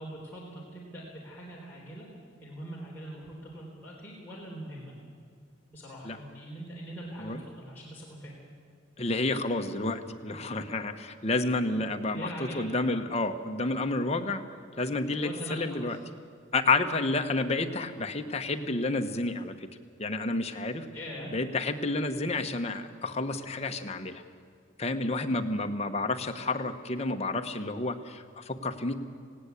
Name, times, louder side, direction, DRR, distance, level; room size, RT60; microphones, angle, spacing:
voice 1, 0.0-2.1 2.4-5.0 5.7-8.4 11.7-12.7 15.1-15.9 20.9-21.3, equal, 10° left, -6 dB, 3.8 m, -42 dB
voice 2, 9.0-14.5 14.8-16.0 16.5-19.7 20.0-20.9 21.3-24.2 24.8-29.0, left 2 dB, 35° left, 6 dB, 1.2 m, -30 dB
19.0 x 17.0 x 8.3 m, 2.2 s
head